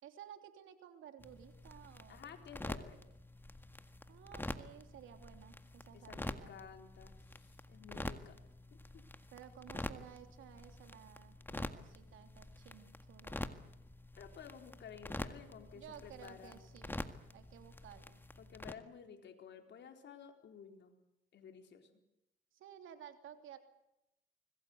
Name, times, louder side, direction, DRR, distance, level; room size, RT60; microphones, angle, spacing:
voice 1, 0.0-2.3 4.1-6.5 9.3-13.6 15.7-17.0 17.3-18.2 22.5-23.6, right 10 dB, 80° right, 7 dB, 3.2 m, -55 dB
sound 1, 1.2-18.7, left 1 dB, 10° left, 1.8 m, -47 dB
voice 2, 2.1-3.0 5.9-8.4 8.7-9.0 14.2-16.6 18.4-20.9 21.3-21.9, left 7 dB, 65° left, 5 dB, 4.3 m, -53 dB
25.0 x 21.0 x 8.1 m, 0.88 s
cardioid pair, 90°, 20 cm